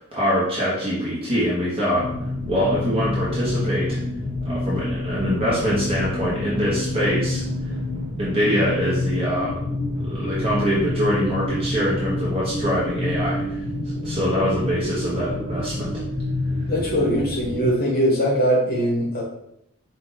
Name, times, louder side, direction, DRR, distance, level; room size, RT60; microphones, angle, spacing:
voice 1, 0.0-2.0 2.4-4.0 4.4-7.4 8.2-9.6 10.0-13.4 13.9-15.9, equal, 25° right, -7 dB, 1.1 m, -24 dB
sound 1, 1.9-17.7, left 1 dB, 80° right, 1.2 m, -27 dB
voice 2, 16.7-19.2, equal, 45° left, -2 dB, 1.1 m, -21 dB
4.7 x 2.6 x 3.9 m, 0.76 s
head